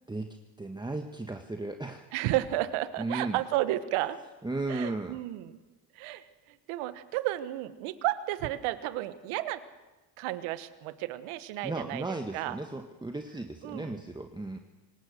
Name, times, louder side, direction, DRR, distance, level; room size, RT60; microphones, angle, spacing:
voice 1, 0.6-2.1 3.0-3.4 4.4-5.2 11.6-14.6, right 2 dB, 10° right, 5 dB, 1.4 m, -35 dB
voice 2, 2.1-4.2 4.7-5.6 5.9-9.6 10.2-12.6 13.6-14.0, right 15 dB, 75° right, 13 dB, 1.5 m, -32 dB
24.5 x 18.5 x 6.6 m, 1.2 s
supercardioid pair, 95°, 50 cm